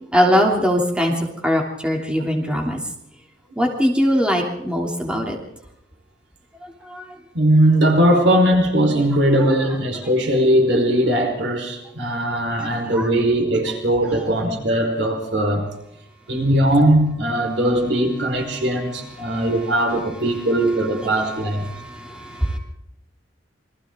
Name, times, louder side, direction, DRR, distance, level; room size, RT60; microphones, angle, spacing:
voice 1, 0.1-2.8 3.6-5.4 6.9-7.0 9.4-9.7 12.8-13.1 14.0-14.3 19.2-19.5 21.2-22.6, equal, 5° right, 0 dB, 3.3 m, -22 dB
voice 2, 7.3-15.7 16.3-21.6, right 1 dB, 75° right, 2 dB, 4.9 m, -19 dB
28.0 x 24.0 x 3.9 m, 0.81 s
head